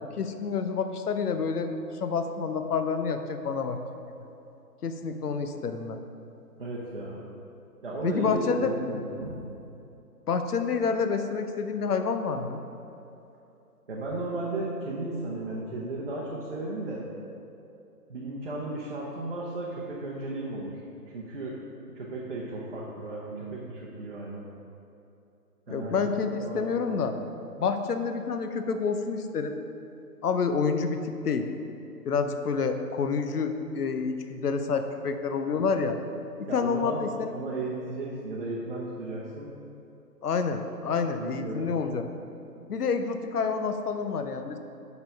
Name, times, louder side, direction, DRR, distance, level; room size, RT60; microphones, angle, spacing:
voice 1, 0.0-1.7 2.0-3.8 4.8-6.0 8.0-8.7 10.3-12.6 25.7-27.1 27.6-29.6 30.2-31.5 32.0-36.0 36.4-37.3 40.2-42.1 42.7-44.6, left 5 dB, 70° left, 7 dB, 0.8 m, -28 dB
voice 2, 6.6-7.2 7.8-9.4 13.9-17.1 18.1-20.8 21.1-21.6 21.9-24.5 25.7-26.0 26.2-27.2 35.6-35.8 36.5-37.0 37.3-39.5 41.1-41.7, right 2 dB, 35° right, -5 dB, 0.8 m, -35 dB
5.8 x 5.6 x 5.7 m, 2.8 s
hypercardioid pair, 165°, 48 cm